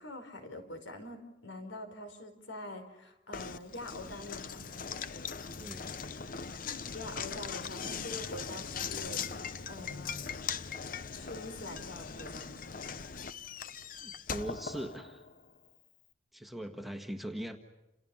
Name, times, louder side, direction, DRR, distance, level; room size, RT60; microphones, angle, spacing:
voice 1, 0.0-4.8 6.9-10.4 11.1-12.6, left 2 dB, 75° left, 7 dB, 4.8 m, -45 dB
Knock, 3.3-15.5, left 6 dB, 45° left, 0.8 m, -40 dB
voice 2, 5.6-5.9 14.0-15.2 16.3-17.6, right 1 dB, ahead, 4 dB, 1.5 m, -40 dB
29.5 x 29.0 x 5.7 m, 1.0 s
head